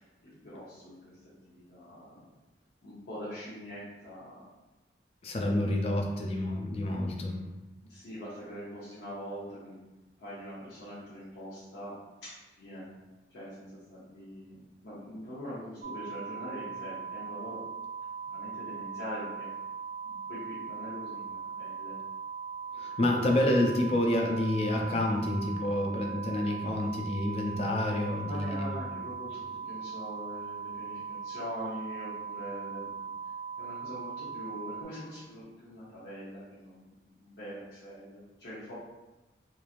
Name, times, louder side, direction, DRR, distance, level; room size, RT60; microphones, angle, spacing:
voice 1, 0.2-1.2 1.5-2.3 2.8-4.5 7.8-9.8 10.2-12.0 12.2-12.9 13.3-17.6 18.2-19.5 20.0-21.9 28.1-33.1 33.6-38.7, equal, 90° left, -10 dB, 0.7 m, -43 dB
voice 2, 5.2-7.4 22.8-29.0, left 1 dB, 35° left, 2 dB, 0.3 m, -29 dB
sound 1, 15.8-34.8, right 6 dB, 55° right, 0.4 m, -40 dB
3.0 x 2.5 x 2.4 m, 1.1 s
head